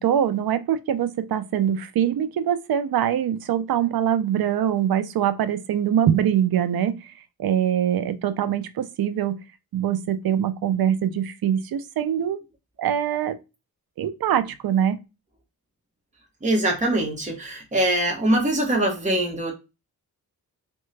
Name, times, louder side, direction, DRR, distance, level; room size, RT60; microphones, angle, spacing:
voice 1, 0.0-7.0 7.4-9.4 9.7-12.4 12.8-13.4 14.0-15.0, right 9 dB, 75° right, 0.5 m, -23 dB
voice 2, 16.4-19.5, right 1 dB, 20° right, 0.8 m, -23 dB
3.7 x 2.2 x 3.2 m
wide cardioid pair, 145°, 36 cm